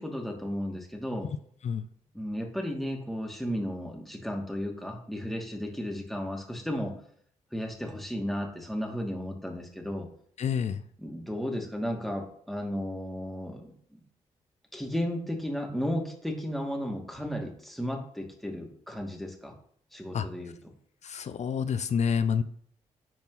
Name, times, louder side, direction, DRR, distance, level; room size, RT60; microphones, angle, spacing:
voice 1, 0.0-1.3 2.1-7.0 7.5-10.1 11.0-13.7 14.7-19.5 19.9-20.5, equal, ahead, 1 dB, 2.5 m, -34 dB
voice 2, 10.4-10.8 20.1-20.3 21.0-22.4, left 7 dB, 55° left, 12 dB, 0.6 m, -28 dB
10.5 x 4.3 x 4.1 m, 0.63 s
supercardioid pair, 50°, 14 cm